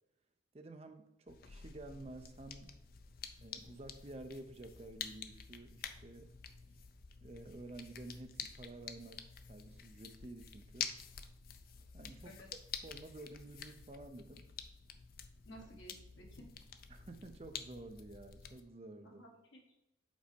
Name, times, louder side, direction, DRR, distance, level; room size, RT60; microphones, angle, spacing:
voice 1, 0.5-2.7 3.4-6.3 7.2-10.9 11.9-12.4 12.8-14.5 16.9-19.3, right 2 dB, 30° right, 7 dB, 0.5 m, -51 dB
sound 1, 1.3-18.6, left 7 dB, 50° left, 0.5 m, -49 dB
voice 2, 15.4-16.4 19.0-19.7, equal, 75° left, 0 dB, 1.6 m, -55 dB
5.2 x 4.0 x 5.1 m, 0.86 s
head